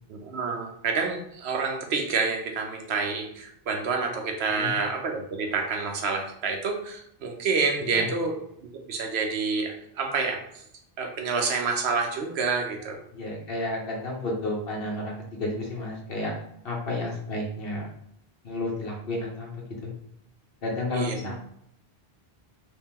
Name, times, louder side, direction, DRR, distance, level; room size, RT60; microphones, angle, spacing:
voice 1, 0.1-8.3 8.6-10.4 11.0-13.0 20.9-21.2, right 4 dB, 90° right, 2 dB, 1.0 m, -28 dB
voice 2, 13.1-16.3 16.6-17.9 18.4-19.9 20.6-21.4, left 2 dB, 65° left, -2 dB, 1.2 m, -31 dB
3.2 x 3.0 x 3.6 m, 0.72 s
omnidirectional pair, 1.0 m